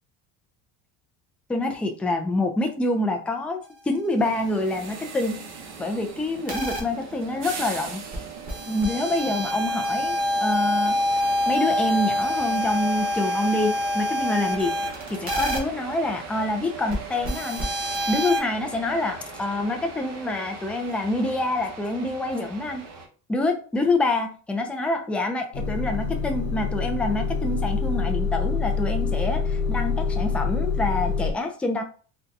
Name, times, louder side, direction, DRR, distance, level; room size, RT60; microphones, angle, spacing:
voice 1, 1.5-5.4 5.8-8.0 8.7-11.0 11.5-14.8 15.1-17.7 18.1-22.9 23.3-31.8, left 2 dB, 5° left, 3 dB, 0.4 m, -26 dB
sound 1, 4.2-23.1, right 5 dB, 50° right, 0.9 m, -39 dB
sound 2, 6.5-6.8 8.1-8.2 8.5-15.6 16.9-17.0 17.2-18.4, left 1 dB, 25° right, 1.2 m, -26 dB
Motor vehicle (road) / Engine starting / Idling, 25.5-31.3, left 5 dB, 50° left, 0.6 m, -26 dB
3.9 x 2.2 x 2.6 m, 0.39 s
cardioid pair, 130°, 34 cm